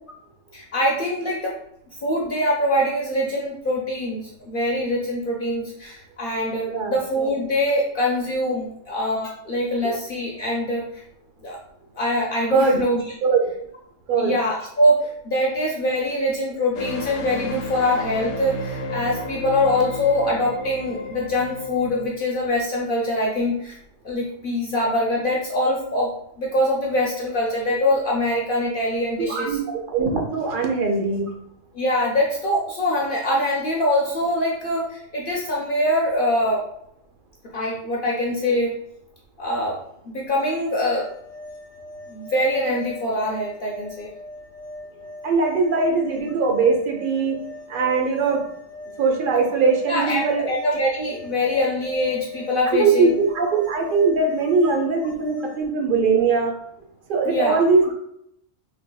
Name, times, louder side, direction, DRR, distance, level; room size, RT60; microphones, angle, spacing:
voice 1, 0.5-1.5 2.0-11.0 11.4-11.6 11.9-13.0 14.2-23.7 24.0-26.1 26.4-29.6 31.7-36.6 37.5-38.7 39.4-39.8 40.1-41.1 42.1-44.1 49.9-53.1 57.2-57.6, left 1 dB, 55° left, -3 dB, 0.7 m, -23 dB
voice 2, 6.7-7.0 12.5-12.8 13.2-13.4 14.1-14.3 29.2-31.3 45.2-47.4 47.7-48.4 49.0-50.5 52.7-56.5 57.1-57.9, right 4 dB, 55° right, 3 dB, 0.7 m, -21 dB
sound 1, 16.7-22.1, left 1 dB, 85° left, 0.9 m, -32 dB
sound 2, 40.3-55.6, left 1 dB, 10° left, 0.5 m, -40 dB
3.4 x 3.3 x 2.2 m, 0.74 s
omnidirectional pair, 1.2 m